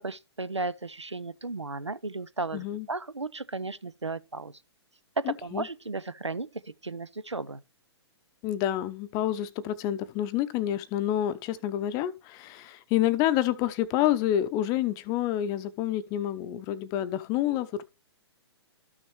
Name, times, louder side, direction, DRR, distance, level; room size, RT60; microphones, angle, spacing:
voice 1, 0.0-4.5 5.2-6.5 6.8-7.6, right 3 dB, 90° right, 0.6 m, -34 dB
voice 2, 2.5-2.9 5.2-5.7 8.4-17.8, left 12 dB, 25° left, 0.7 m, -28 dB
13.5 x 6.1 x 3.1 m
figure-of-eight pair, 120°, 14 cm